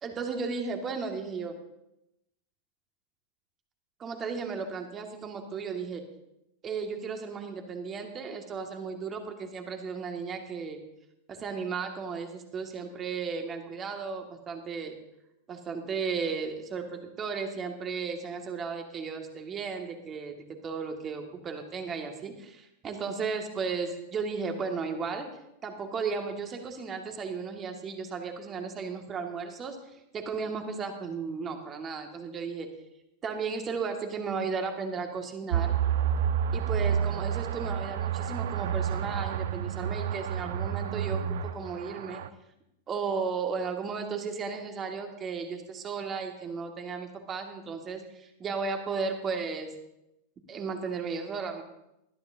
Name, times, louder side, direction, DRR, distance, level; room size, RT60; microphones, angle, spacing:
voice 1, 0.0-1.6 4.0-6.0 6.6-10.8 11.3-15.0 15.5-20.4 20.6-25.3 25.6-29.8 30.1-32.7 33.2-35.7 36.5-42.2 42.9-49.7 50.5-51.6, right 5 dB, 25° right, 4 dB, 2.2 m, -35 dB
sound 1, 35.5-42.3, right 8 dB, 55° right, 0.6 m, -29 dB
20.0 x 13.5 x 2.9 m, 0.85 s
figure-of-eight pair, 90°, 0 cm